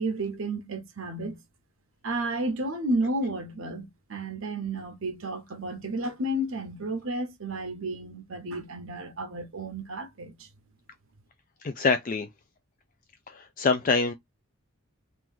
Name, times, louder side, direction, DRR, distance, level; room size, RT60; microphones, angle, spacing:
voice 1, 0.0-1.4 2.0-10.5, right 1 dB, 70° right, 0.8 m, -32 dB
voice 2, 11.6-12.3 13.3-14.1, left 4 dB, 35° left, 0.3 m, -25 dB
3.0 x 2.5 x 3.6 m
head